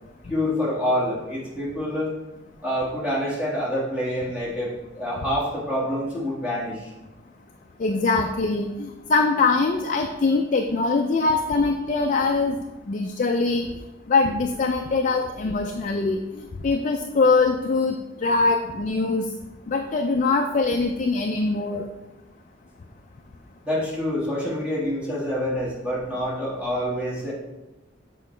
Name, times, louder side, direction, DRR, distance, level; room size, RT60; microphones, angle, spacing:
voice 1, 0.3-2.1 2.6-6.9 23.6-27.3, equal, 5° right, -8 dB, 1.8 m, -27 dB
voice 2, 7.8-12.6 12.9-13.7 14.1-16.2 16.6-18.0 18.2-19.2 19.7-21.8, left 3 dB, 40° left, 4 dB, 0.4 m, -22 dB
7.0 x 4.6 x 3.2 m, 1.0 s
head